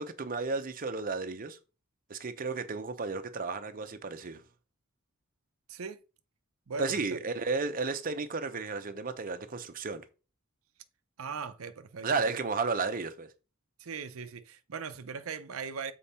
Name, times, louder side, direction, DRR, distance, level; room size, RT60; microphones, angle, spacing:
voice 1, 0.0-1.6 2.1-4.4 6.8-10.0 12.0-13.3, right 4 dB, 45° right, 0.8 m, -33 dB
voice 2, 5.7-6.0 6.7-7.2 11.2-12.1 13.8-15.9, right 5 dB, 85° right, 0.6 m, -39 dB
7.1 x 4.6 x 4.2 m
head